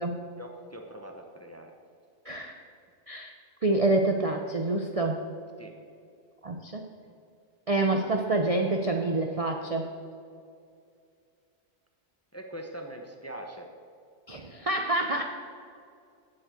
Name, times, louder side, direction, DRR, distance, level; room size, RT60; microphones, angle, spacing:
voice 1, 0.4-1.7 5.6-5.7 12.3-13.7, right 1 dB, 15° left, 3 dB, 0.7 m, -42 dB
voice 2, 3.6-5.2 6.4-6.8 7.7-9.9 14.3-15.2, right 2 dB, 40° right, 3 dB, 0.5 m, -27 dB
7.8 x 7.4 x 8.2 m, 2.3 s
omnidirectional pair, 1.4 m